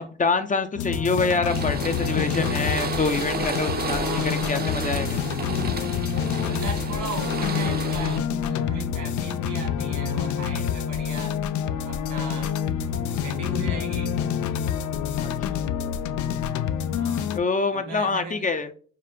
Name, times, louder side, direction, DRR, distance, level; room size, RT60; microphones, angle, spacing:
voice 1, 0.0-5.2 10.5-10.6 15.2-15.3 17.3-18.7, left 4 dB, 25° left, 8 dB, 0.5 m, -26 dB
sound 1, 0.8-17.4, left 8 dB, 75° left, 0.5 m, -27 dB
sound 2, 1.5-8.2, right 5 dB, 30° right, 0.6 m, -32 dB
voice 2, 4.0-4.4 6.4-11.4 11.9-12.6 13.1-14.2 17.0-17.3 17.7-18.5, right 3 dB, 75° right, 3 dB, 1.9 m, -37 dB
5.1 x 2.5 x 2.8 m, 0.42 s
cardioid pair, 90°, 30 cm